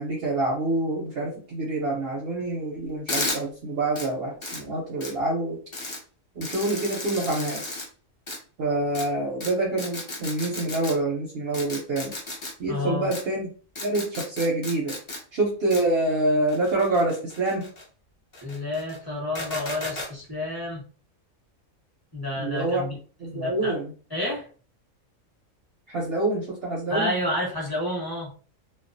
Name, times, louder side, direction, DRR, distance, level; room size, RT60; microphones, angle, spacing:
voice 1, 0.0-5.6 6.4-7.8 8.6-12.1 12.6-13.5 13.8-15.0 15.3-17.7 22.4-22.8 23.2-23.9 25.9-27.1, right 2 dB, 60° right, -2 dB, 0.7 m, -26 dB
sound 1, 3.1-3.4 4.0-4.1 4.4-4.6 5.0-5.1 5.7-6.0 6.4-7.9 8.3-8.4 8.9-9.1 9.4-9.5 9.8-10.9 11.5-12.5 13.1-13.2 13.8-15.2 15.7-15.8 16.5-17.8 18.3-19.0 19.3-20.1, left 2 dB, 40° left, 0.4 m, -33 dB
voice 2, 12.7-13.1 18.4-20.8 22.1-23.0 23.3-23.7 24.1-24.5 26.9-28.3, left 1 dB, 20° left, -5 dB, 0.8 m, -30 dB
2.3 x 2.1 x 2.5 m, 0.39 s
omnidirectional pair, 1.4 m